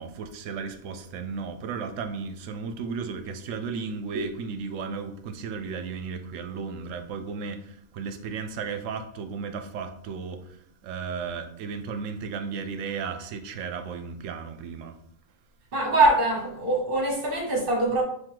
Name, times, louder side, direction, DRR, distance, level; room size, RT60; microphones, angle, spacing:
voice 1, 0.0-15.0, right 5 dB, 80° right, 0.9 m, -34 dB
voice 2, 15.7-18.0, right 2 dB, 45° right, 1.3 m, -23 dB
3.8 x 2.6 x 4.6 m
omnidirectional pair, 1.3 m